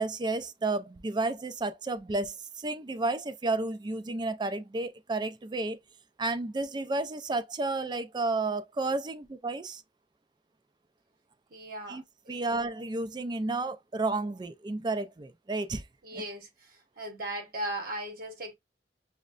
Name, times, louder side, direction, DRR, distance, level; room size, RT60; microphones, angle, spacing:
voice 1, 0.0-5.8 6.2-9.8 11.9-15.8 16.1-16.2, right 2 dB, 25° right, 0.4 m, -32 dB
voice 2, 11.5-12.4 16.0-16.5 17.0-18.5, right 1 dB, 55° right, 1.0 m, -37 dB
6.2 x 2.1 x 2.4 m
head